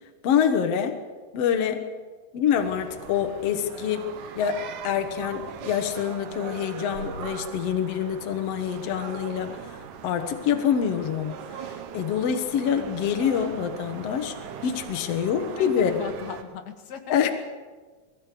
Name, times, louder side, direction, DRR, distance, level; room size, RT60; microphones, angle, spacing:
voice 1, 0.2-0.9 1.3-1.9 2.3-4.1 4.3-9.8 10.0-14.3 14.6-16.0 17.1-17.3, left 8 dB, 75° left, 6 dB, 1.4 m, -26 dB
sound 1, 2.5-16.4, right 7 dB, 65° right, 2.2 m, -40 dB
voice 2, 15.6-17.3, left 7 dB, 50° left, 5 dB, 2.5 m, -38 dB
20.0 x 16.0 x 8.4 m, 1.4 s
omnidirectional pair, 4.5 m